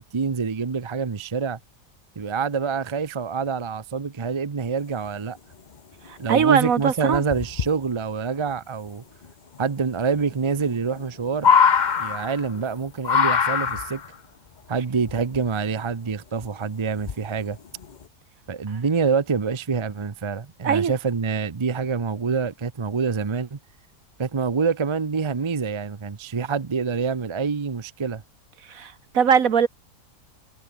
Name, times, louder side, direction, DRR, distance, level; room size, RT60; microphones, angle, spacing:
voice 1, 0.0-1.6 2.2-5.4 6.2-9.0 9.6-11.5 12.0-14.0 14.7-17.6 18.5-23.6 24.2-28.2, right 5 dB, 40° right, 0.4 m, -26 dB
sound 1, 6.1-6.2 6.4-6.7 7.1-7.7 9.2-9.3 9.5-9.6 10.2-10.3 10.6-12.7 13.0-14.1 15.0-15.7 16.4-16.5 17.0-17.4 17.8-18.0, left 6 dB, 40° left, 0.7 m, -22 dB
voice 2, 6.1-7.2 20.6-20.9 28.7-29.7, right 7 dB, 60° right, 1.7 m, -21 dB
omnidirectional pair, 1.7 m